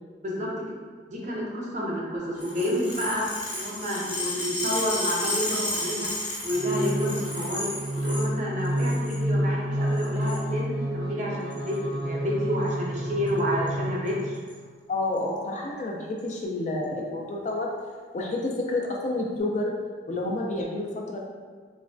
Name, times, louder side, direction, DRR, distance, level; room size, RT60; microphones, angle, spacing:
voice 1, 1.1-6.1 6.4-7.7 8.0-14.4, equal, 40° right, -4 dB, 0.5 m, -29 dB
sound 1, 2.4-8.3 8.6-9.2 9.9-10.4 11.5-11.7 12.7-13.0 13.3-13.4 13.7-13.8 14.1-14.5 15.2-15.3 16.2-16.3, left 1 dB, 65° left, 1.1 m, -32 dB
sound 2, 6.5-14.5, equal, 85° right, 0.5 m, -29 dB
voice 2, 14.9-17.7 18.1-19.7 20.1-21.2, left 2 dB, 40° left, -1 dB, 0.3 m, -29 dB
3.0 x 2.1 x 2.5 m, 1.5 s
head